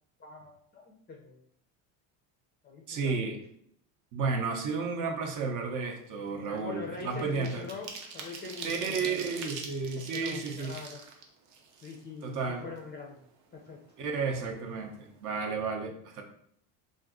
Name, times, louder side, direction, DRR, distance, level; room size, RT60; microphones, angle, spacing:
voice 1, 0.2-1.4 2.6-3.4 6.5-9.4 10.0-11.0 11.8-13.2 13.5-13.8, left 4 dB, 20° left, 0 dB, 0.5 m, -43 dB
voice 2, 2.9-3.4 4.1-7.6 8.6-10.8 12.2-12.7 14.0-16.2, right 4 dB, 40° right, 3 dB, 0.6 m, -32 dB
sound 1, 5.4-5.6 6.0-12.4 12.8-12.9 13.2-14.2 14.5-14.6 14.9-15.2, right 5 dB, 80° right, 0.8 m, -44 dB
2.5 x 2.5 x 3.6 m, 0.68 s
supercardioid pair, 115°, 47 cm